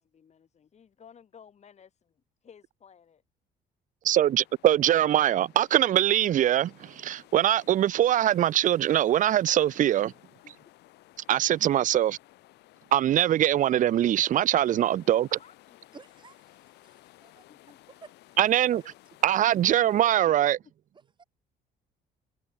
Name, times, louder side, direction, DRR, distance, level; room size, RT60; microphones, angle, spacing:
voice 1, 0.0-3.2 10.4-10.5 13.6-14.1 15.2-16.0 17.5-17.8 19.9-20.7, left 7 dB, 40° left, 5.3 m, -55 dB
voice 2, 4.0-10.1 11.3-12.2 12.9-15.4 18.4-18.8 19.2-20.6, right 12 dB, 50° right, 0.6 m, -23 dB
sound 1, 4.1-20.1, left 17 dB, 80° left, 4.6 m, -57 dB
voice 3, 15.9-16.9 17.2-17.4 18.0-18.1 21.2-21.3, right 5 dB, 25° right, 1.8 m, -52 dB
cardioid pair, 110°, 17 cm